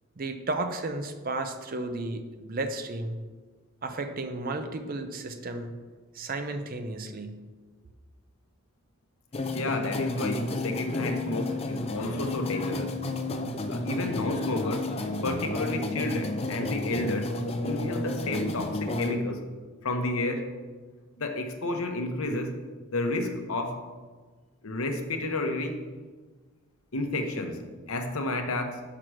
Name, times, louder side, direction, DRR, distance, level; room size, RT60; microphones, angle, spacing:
voice 1, 0.2-3.2 3.8-5.7 6.1-7.4, right 2 dB, 40° right, 7 dB, 0.5 m, -33 dB
sound 1, 9.3-19.1, left 2 dB, 25° left, 0.4 m, -31 dB
voice 2, 9.5-12.9 13.7-14.9 15.2-17.3 17.6-19.4 19.8-20.5 21.2-22.6 22.9-23.8 24.6-25.8 26.9-28.8, left 2 dB, 70° left, 5 dB, 0.9 m, -31 dB
5.9 x 4.7 x 6.1 m, 1.4 s
head